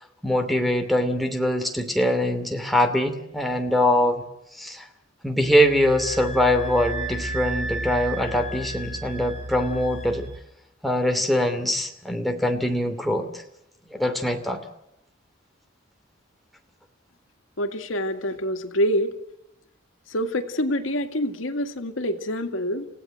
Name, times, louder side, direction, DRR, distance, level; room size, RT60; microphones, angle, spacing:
voice 1, 0.2-4.2 4.6-4.8 5.2-10.3 10.8-13.4 13.9-14.6, left 1 dB, ahead, 4 dB, 2.8 m, -23 dB
sound 1, 5.4-10.4, right 2 dB, 70° right, 5.3 m, -33 dB
voice 2, 17.6-19.2 20.1-22.9, equal, 85° left, 7 dB, 2.1 m, -26 dB
30.0 x 17.0 x 7.8 m, 0.84 s
head